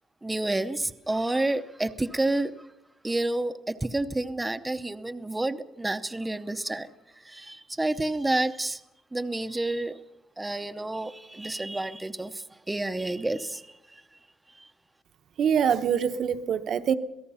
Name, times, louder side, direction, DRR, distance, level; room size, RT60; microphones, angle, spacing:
voice 1, 0.2-2.7 3.0-6.9 7.2-8.8 9.1-10.0 10.4-14.0 14.6-14.7, right 2 dB, 10° right, 0.7 m, -29 dB
voice 2, 15.4-17.0, right 8 dB, 50° right, 1.0 m, -24 dB
27.0 x 18.0 x 5.6 m
cardioid pair, 175°, 0 cm